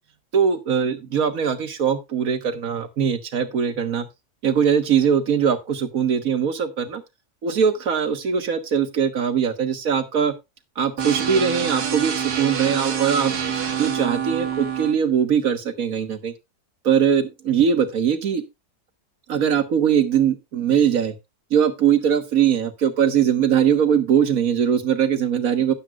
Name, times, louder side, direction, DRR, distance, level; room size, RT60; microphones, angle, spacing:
voice 1, 0.3-4.1 4.4-7.0 7.4-10.3 10.8-13.3 13.8-16.3 16.8-18.4 19.3-21.2 21.5-25.7, right 7 dB, 65° right, 7 dB, 1.7 m, -21 dB
sound 1, 11.0-14.9, right 8 dB, 90° right, 2.0 m, -26 dB
12.5 x 9.8 x 2.4 m, 0.24 s
omnidirectional pair, 1.6 m